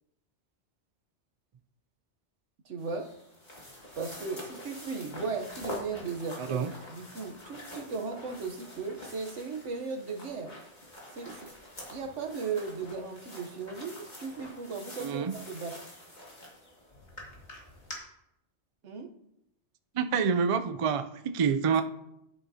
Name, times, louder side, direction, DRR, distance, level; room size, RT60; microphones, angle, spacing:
voice 1, 2.6-3.2 4.0-10.6 11.1-11.6 11.9-15.8 18.8-19.1, right 4 dB, 85° right, 4 dB, 1.3 m, -37 dB
sound 1, 2.8-18.0, left 1 dB, 40° left, 2.2 m, -46 dB
voice 2, 6.4-6.7 15.0-15.4 19.9-21.8, right 6 dB, 50° right, 10 dB, 0.4 m, -27 dB
10.5 x 8.1 x 2.8 m, 0.81 s
omnidirectional pair, 1.2 m